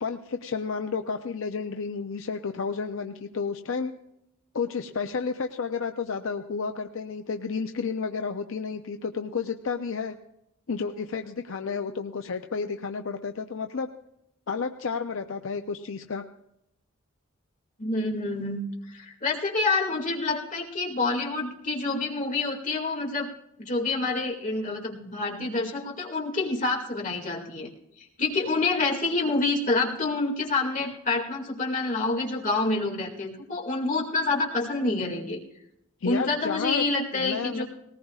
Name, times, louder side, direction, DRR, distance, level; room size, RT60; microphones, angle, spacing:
voice 1, 0.0-3.9 4.5-10.2 10.7-13.9 14.5-16.2 36.0-36.9 37.1-37.6, left 5 dB, 65° left, 6 dB, 0.6 m, -31 dB
voice 2, 17.8-18.6 18.9-23.3 23.6-27.7 28.0-35.4 36.0-37.6, left 3 dB, 35° left, -1 dB, 2.2 m, -27 dB
19.5 x 18.5 x 2.4 m, 0.81 s
head